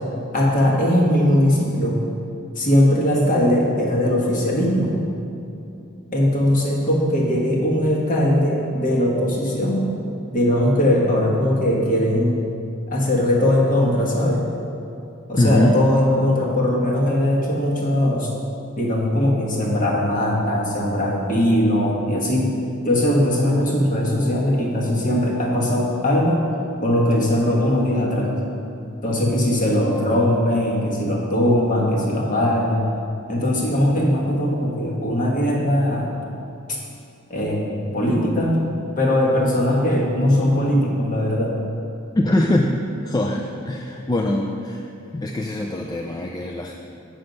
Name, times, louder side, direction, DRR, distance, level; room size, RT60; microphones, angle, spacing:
voice 1, 0.3-2.0 2.5-5.0 6.1-9.9 10.3-12.3 12.9-14.4 15.3-18.3 18.8-22.5 22.8-26.4 26.8-28.3 29.0-32.9 33.3-36.1 37.3-38.6 39.0-41.6, left 1 dB, 40° left, -2 dB, 1.4 m, -20 dB
voice 2, 15.4-15.8 42.1-44.8 45.1-46.7, left 1 dB, 20° left, 1 dB, 0.3 m, -22 dB
7.7 x 6.3 x 5.3 m, 2.7 s
head